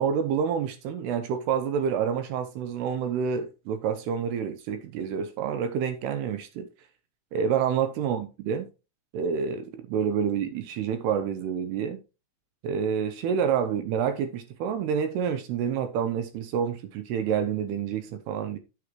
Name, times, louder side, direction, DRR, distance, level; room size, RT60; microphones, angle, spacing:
voice 1, 0.0-6.7 7.3-8.7 9.1-12.0 12.6-18.6, right 7 dB, 80° right, 2.5 m, -28 dB
8.8 x 8.3 x 3.0 m
omnidirectional pair, 5.3 m